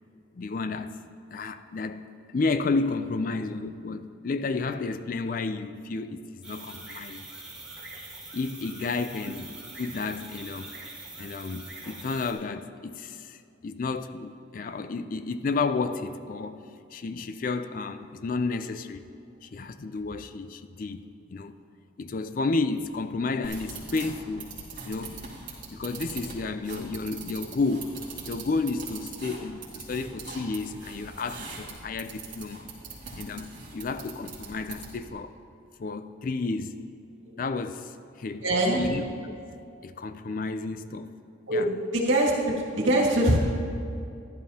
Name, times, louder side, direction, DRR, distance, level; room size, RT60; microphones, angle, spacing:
voice 1, 0.3-1.0 1.3-7.2 8.3-10.7 11.2-16.6 16.9-19.0 19.4-21.5 22.0-24.5 24.8-25.2 25.7-28.0 28.2-32.7 33.2-35.3 35.8-36.8 37.4-38.5 38.7-39.3 39.8-41.1 41.5-41.7, left 3 dB, 45° left, 11 dB, 0.4 m, -31 dB
sound 1, 6.4-12.3, right 2 dB, 5° right, 1.5 m, -43 dB
sound 2, 23.4-35.1, right 4 dB, 45° right, 2.2 m, -42 dB
voice 2, 38.4-38.9 41.5-43.4, right 1 dB, 80° right, -2 dB, 2.0 m, -23 dB
14.0 x 11.0 x 2.8 m, 2.4 s
head